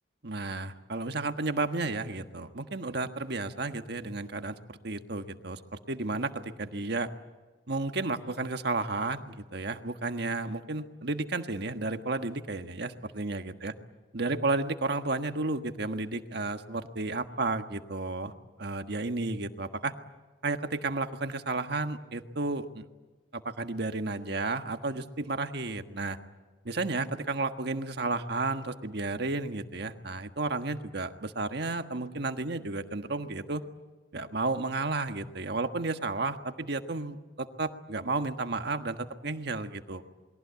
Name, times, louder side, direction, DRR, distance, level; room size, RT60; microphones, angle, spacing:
voice 1, 0.2-7.1 7.7-13.7 14.1-18.3 18.6-19.9 20.4-22.8 23.3-26.2 26.6-33.6 34.1-40.0, right 3 dB, 60° right, 7 dB, 1.5 m, -32 dB
28.5 x 22.0 x 8.3 m, 1.3 s
head